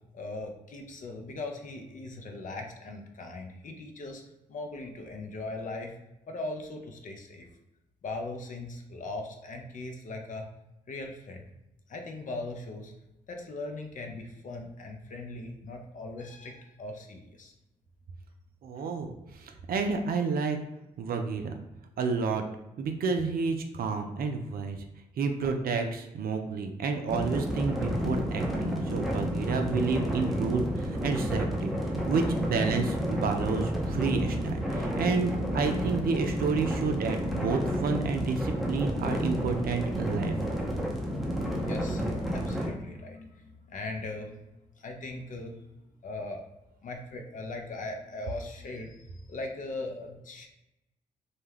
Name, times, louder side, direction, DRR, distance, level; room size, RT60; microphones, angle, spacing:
voice 1, 0.1-4.2 4.5-5.9 6.3-7.5 8.0-10.5 10.9-11.5 11.9-12.9 13.3-17.5 41.5-44.3 44.8-45.6 46.0-46.4 46.8-50.5, left 2 dB, 45° left, 3 dB, 0.6 m, -39 dB
voice 2, 18.6-19.1 19.4-20.6 21.0-21.6 22.0-22.4 22.8-24.8 25.2-31.7 32.1-40.3, right 4 dB, 55° right, 5 dB, 0.4 m, -30 dB
sound 1, 27.1-42.7, equal, ahead, 0.7 m, -31 dB
2.2 x 2.2 x 3.3 m, 0.92 s
hypercardioid pair, 40°, 18 cm